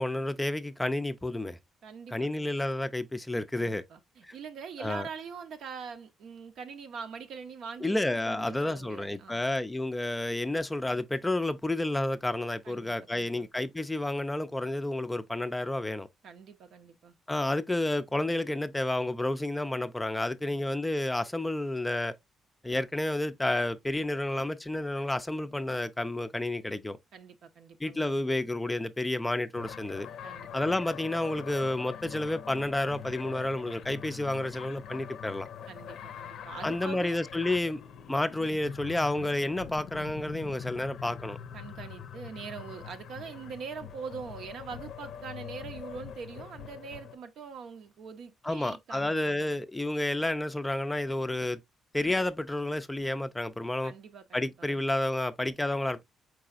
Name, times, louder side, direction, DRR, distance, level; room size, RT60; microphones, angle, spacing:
voice 1, 0.0-1.6 2.1-3.8 4.2-4.3 4.8-5.1 7.8-16.1 17.3-22.1 22.6-27.0 27.8-30.1 30.5-35.5 36.6-37.8 38.1-41.4 48.4-51.6 51.9-53.9 54.3-56.0, left 1 dB, 10° left, 0.4 m, -30 dB
voice 2, 1.8-2.5 3.5-9.5 12.6-13.5 16.2-17.1 20.4-20.8 27.1-28.2 30.2-30.5 35.7-37.2 41.5-49.6 53.8-54.8, right 6 dB, 70° right, 0.7 m, -43 dB
sound 1, 29.5-47.2, left 8 dB, 75° left, 0.5 m, -44 dB
4.7 x 3.8 x 2.4 m
cardioid pair, 90°, 0 cm